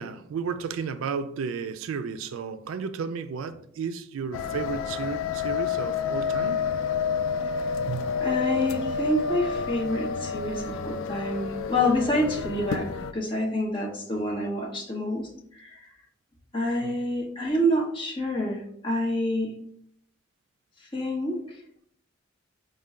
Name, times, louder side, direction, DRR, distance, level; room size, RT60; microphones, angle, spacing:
voice 1, 0.0-6.6 7.8-8.1 16.8-17.0, right 6 dB, 80° right, 0.3 m, -33 dB
sound 1, 4.3-13.1, left 6 dB, 75° left, 0.3 m, -29 dB
voice 2, 8.2-15.3 15.5-15.8 16.5-19.5 20.9-21.6, left 1 dB, 25° left, 0.9 m, -27 dB
5.3 x 2.2 x 3.5 m
head